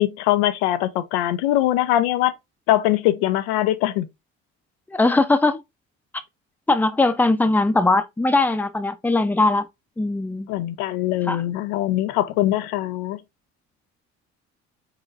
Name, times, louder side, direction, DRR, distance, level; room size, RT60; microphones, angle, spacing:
voice 1, 0.0-2.3 2.7-4.1 10.5-13.2, left 14 dB, 85° left, 0.5 m, -22 dB
voice 2, 4.9-5.6 6.7-9.7 10.0-10.5 11.3-11.4, left 2 dB, 5° left, 0.5 m, -20 dB
4.1 x 3.8 x 2.4 m
supercardioid pair, 70°, 32 cm